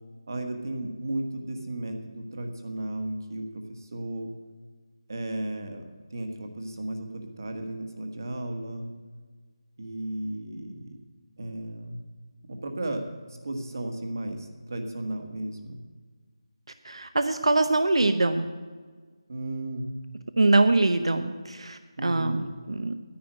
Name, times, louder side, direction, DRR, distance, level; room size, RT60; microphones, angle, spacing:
voice 1, 0.3-4.3 5.1-5.8 6.1-8.9 9.8-11.0 11.4-12.0 12.4-15.8 19.3-19.9 22.0-22.5, right 1 dB, 40° right, 5 dB, 1.4 m, -34 dB
voice 2, 16.8-18.5 20.4-22.9, right 2 dB, 85° right, 9 dB, 0.9 m, -23 dB
10.5 x 9.5 x 7.5 m, 1.5 s
figure-of-eight pair, 180°, 3 cm